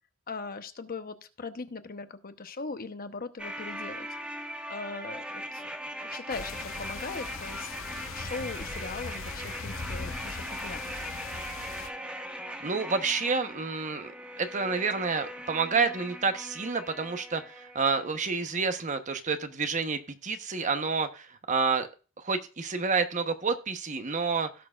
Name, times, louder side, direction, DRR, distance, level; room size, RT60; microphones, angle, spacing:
voice 1, 0.3-4.1 4.7-5.7 6.0-11.0, left 4 dB, 45° left, 9 dB, 0.9 m, -40 dB
sound 1, 3.4-18.4 18.7-18.8, equal, 5° right, 1.5 m, -40 dB
sound 2, 6.3-11.9, left 4 dB, 80° left, 0.9 m, -40 dB
voice 2, 12.6-14.1 14.4-21.9 22.2-24.5, right 4 dB, 40° right, 8 dB, 1.0 m, -29 dB
17.0 x 6.6 x 2.4 m, 0.35 s
head